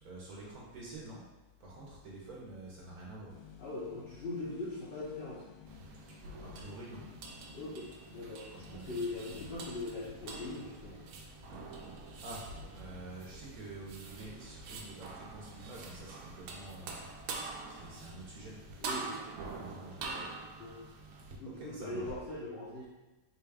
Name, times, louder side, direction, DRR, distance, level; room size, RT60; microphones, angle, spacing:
voice 1, 0.0-1.2 1.6-3.3 6.3-7.0 8.5-9.4 12.2-12.4 12.7-17.1 17.3-18.6 19.6-20.0 21.4-22.0, right 2 dB, 65° right, -5 dB, 1.2 m, -48 dB
sound 1, 3.3-11.2, left 7 dB, 85° left, 1.2 m, -56 dB
voice 2, 3.6-5.4 7.5-8.4 8.7-11.0 18.8-19.3 19.9-20.3 20.6-20.8 21.3-22.8, left 2 dB, 60° left, -8 dB, 0.6 m, -41 dB
sound 2, 5.7-21.4, right 4 dB, 85° right, 1.2 m, -46 dB
sound 3, 8.6-18.9, left 1 dB, 35° right, 0.7 m, -56 dB
4.0 x 2.3 x 3.3 m, 1.1 s
omnidirectional pair, 1.7 m